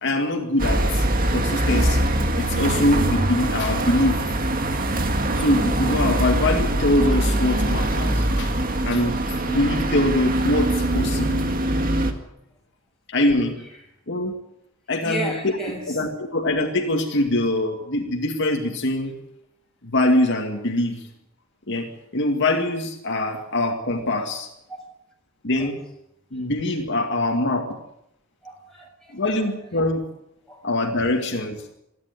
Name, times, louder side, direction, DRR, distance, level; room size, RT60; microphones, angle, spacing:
voice 1, 0.0-1.1 1.3-2.1 2.4-4.2 5.4-8.5 8.8-9.2 9.5-11.5 13.1-13.6 14.1-14.4 14.9-15.3 15.9-19.1 19.8-21.1 21.7-24.5 25.4-25.8 26.3-27.8 29.1-30.0 30.6-31.6, left 1 dB, 55° left, 2.3 m, -23 dB
sound 1, 0.6-12.1, right 1 dB, 40° right, 2.1 m, -23 dB
voice 2, 15.0-16.0 25.6-25.7 28.4-29.2 30.5-30.6, equal, ahead, 7.0 m, -33 dB
27.5 x 11.0 x 9.3 m
head